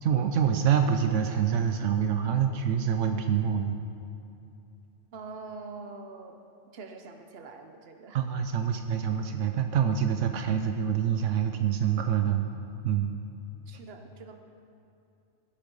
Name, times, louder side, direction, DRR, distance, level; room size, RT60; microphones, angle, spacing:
voice 1, 0.0-3.8 8.1-12.5 12.8-13.1, right 8 dB, 80° right, 6 dB, 1.0 m, -26 dB
voice 2, 5.1-8.2 13.7-14.4, right 3 dB, 55° right, 5 dB, 1.1 m, -44 dB
16.0 x 8.7 x 5.3 m, 2.7 s
omnidirectional pair, 1.3 m